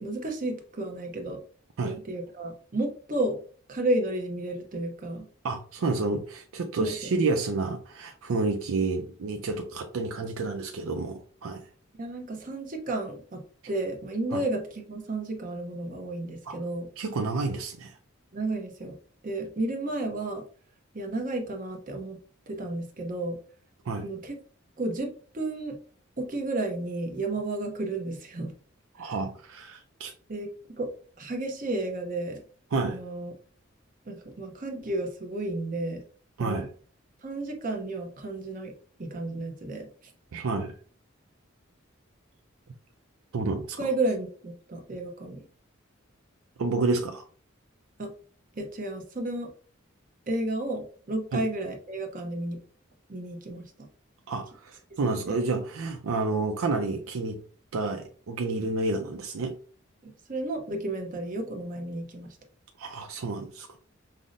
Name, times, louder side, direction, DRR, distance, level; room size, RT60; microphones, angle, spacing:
voice 1, 0.0-1.4 1.8-3.4 3.7-5.2 6.8-7.1 12.0-16.9 18.3-19.0 19.2-20.4 20.9-22.2 22.5-23.4 24.0-24.4 24.8-25.8 26.2-28.5 29.0-29.1 30.3-30.5 30.8-30.9 31.2-32.4 32.8-33.3 34.1-36.0 36.4-36.7 37.2-38.7 39.0-40.1 43.8-45.4 48.0-48.1 48.5-49.5 50.3-52.6 53.1-53.9 55.1-55.2 60.0-62.4, right 2 dB, 40° right, 3 dB, 0.7 m, -32 dB
voice 2, 5.4-11.6 14.3-14.4 16.5-16.6 17.0-18.0 23.9-24.1 29.0-30.1 32.7-33.0 36.4-36.7 40.3-40.7 43.3-43.8 46.6-47.2 51.3-51.4 54.3-57.4 57.7-59.6 62.8-63.8, right 3 dB, 85° right, 5 dB, 0.4 m, -30 dB
5.4 x 2.0 x 2.5 m, 0.42 s
head